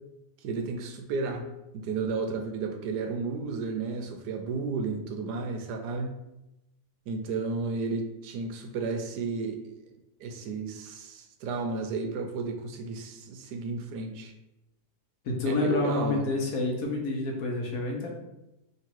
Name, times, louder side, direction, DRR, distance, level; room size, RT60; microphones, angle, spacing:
voice 1, 0.4-1.5 1.7-6.1 7.1-9.6 10.2-14.3 15.4-16.2, right 4 dB, 80° right, 5 dB, 1.1 m, -32 dB
voice 2, 15.2-18.1, left 3 dB, 65° left, 0 dB, 1.1 m, -28 dB
3.1 x 2.9 x 4.5 m, 0.90 s
omnidirectional pair, 1.8 m